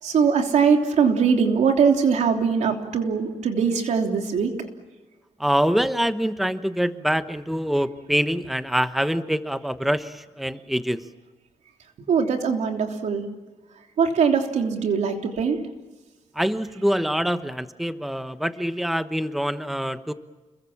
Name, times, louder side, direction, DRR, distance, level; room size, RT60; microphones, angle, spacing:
voice 1, 0.0-4.5 12.1-13.2 14.0-15.6, right 6 dB, 90° right, 3 dB, 3.2 m, -21 dB
voice 2, 5.4-11.0 16.3-20.1, equal, ahead, 10 dB, 1.1 m, -25 dB
29.5 x 22.5 x 7.3 m, 1.2 s
wide cardioid pair, 110°, 12 cm